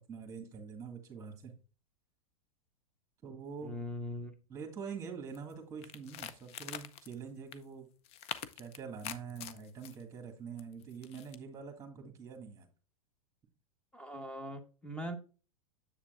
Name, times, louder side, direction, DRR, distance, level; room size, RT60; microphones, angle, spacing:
voice 1, 0.1-1.5 3.2-3.8 4.5-7.9 8.6-12.7, right 6 dB, 15° right, 3 dB, 1.9 m, -45 dB
voice 2, 3.6-4.3 13.9-15.1, left 1 dB, 5° left, 7 dB, 1.3 m, -41 dB
sound 1, 5.3-5.5 5.8-7.1 7.5-7.6 8.0-10.0 10.6-11.4, left 10 dB, 35° left, 0.6 m, -44 dB
7.4 x 7.2 x 2.5 m, 0.34 s
hypercardioid pair, 115°, 18 cm